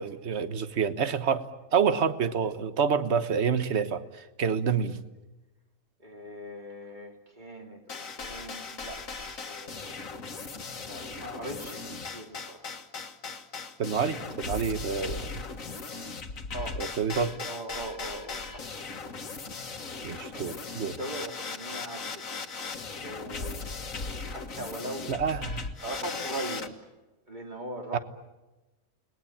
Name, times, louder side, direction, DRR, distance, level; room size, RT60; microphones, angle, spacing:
voice 1, 0.0-1.5 1.7-5.0 13.8-15.3 16.8-17.4 20.0-21.0 25.1-25.7 27.9-28.0, right 6 dB, 55° right, 12 dB, 1.4 m, -28 dB
voice 2, 6.0-10.0 10.8-12.8 16.5-16.8 17.5-19.3 19.7-22.5 23.0-23.9 24.3-25.1 25.8-26.7 27.3-28.0, right 1 dB, 35° right, 3 dB, 2.9 m, -41 dB
sound 1, 7.9-26.7, left 4 dB, 75° left, 2.0 m, -38 dB
29.5 x 20.5 x 8.7 m, 1.1 s
omnidirectional pair, 1.4 m